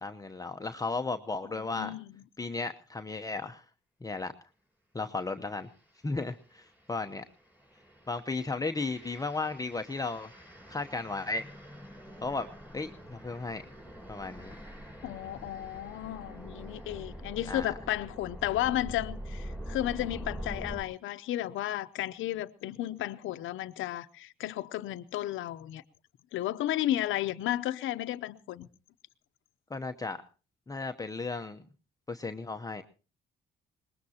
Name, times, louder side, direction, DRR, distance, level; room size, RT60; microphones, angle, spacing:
voice 1, 0.0-2.0 2.4-3.6 4.0-4.3 4.9-5.7 6.0-7.2 8.1-10.3 10.7-11.4 12.2-12.5 12.7-13.7 14.1-14.6 17.5-17.7 29.7-30.2 30.7-31.6 32.1-32.8, left 3 dB, 15° left, 0.8 m, -35 dB
voice 2, 1.6-2.1 15.0-25.8 26.3-28.7, left 13 dB, 85° left, 0.7 m, -33 dB
sound 1, 5.6-5.8 6.4-20.8, equal, 10° right, 4.6 m, -45 dB
22.5 x 20.0 x 2.8 m
cardioid pair, 90°, 20 cm